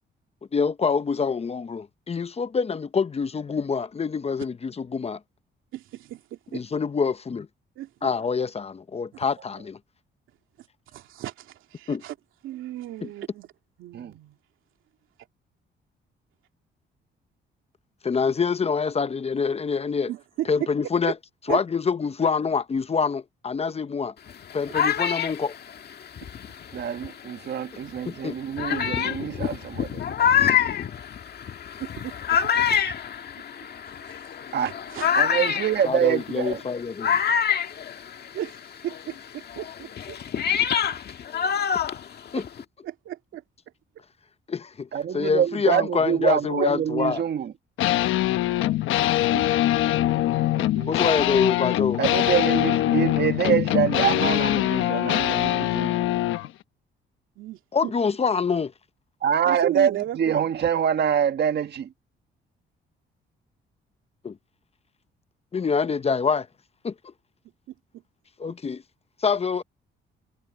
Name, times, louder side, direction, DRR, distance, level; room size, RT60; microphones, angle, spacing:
voice 1, 0.5-5.2 6.5-7.5 8.0-9.8 11.9-12.0 18.0-20.1 20.5-21.1 21.5-24.1 24.5-25.5 28.1-28.4 28.7-28.8 35.8-37.2 42.3-42.4 44.5-44.9 45.1-47.2 50.9-52.0 57.7-58.7 64.2-64.4 65.5-66.5 66.8-66.9 68.4-68.8 69.2-69.6, left 5 dB, 30° left, 0.8 m, -25 dB
voice 2, 5.7-6.6 7.8-8.1 10.6-10.7 10.9-12.1 12.4-13.5 13.8-14.4 20.1-20.5 21.5-21.6 26.2-26.3 31.8-32.9 33.8-34.2 34.6-35.1 38.3-40.2 42.3-42.4 42.8-43.4 49.3-49.5 50.6-50.9 57.4-57.9 59.4-60.5 67.7-68.0, right 13 dB, 85° right, 2.6 m, -36 dB
sound 1, 24.3-27.3 28.0-28.1 28.6-38.6 38.9-42.6, left 8 dB, 55° left, 1.7 m, -26 dB
voice 3, 26.7-30.0 34.5-34.7 35.1-36.6 44.9-47.5 52.0-56.0 59.2-61.9, right 8 dB, 55° right, 1.8 m, -25 dB
sound 2, 47.8-56.5, left 14 dB, 85° left, 1.0 m, -23 dB
cardioid pair, 90°, 20 cm